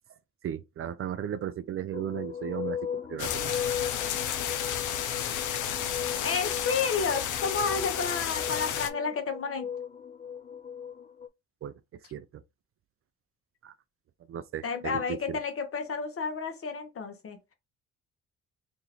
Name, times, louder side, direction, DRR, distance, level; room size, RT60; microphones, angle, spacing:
voice 1, 0.4-3.6 11.6-11.7 12.1-12.4 13.6-13.7 14.3-15.4, right 9 dB, 50° right, 0.4 m, -36 dB
sound 1, 1.9-11.3, left 7 dB, 25° left, 0.4 m, -37 dB
sound 2, 3.2-8.9, left 10 dB, 80° left, 0.6 m, -32 dB
voice 2, 6.2-9.7 14.6-17.4, left 5 dB, 50° left, 1.0 m, -31 dB
2.8 x 2.6 x 4.1 m
cardioid pair, 90°, 30 cm